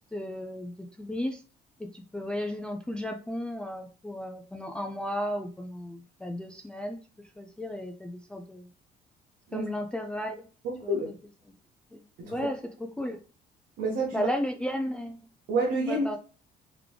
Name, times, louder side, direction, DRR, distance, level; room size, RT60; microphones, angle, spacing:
voice 1, 0.0-1.4 1.8-7.0 7.4-8.7 9.5-10.5 10.8-11.0 11.9-13.2 14.1-15.2 15.9-16.2, left 1 dB, 5° left, 3 dB, 0.3 m, -34 dB
voice 2, 10.6-11.1 12.2-12.5 13.8-14.3 15.5-16.1, right 2 dB, 75° right, -3 dB, 1.3 m, -28 dB
3.6 x 3.3 x 3.1 m, 0.39 s
cardioid pair, 110°, 17 cm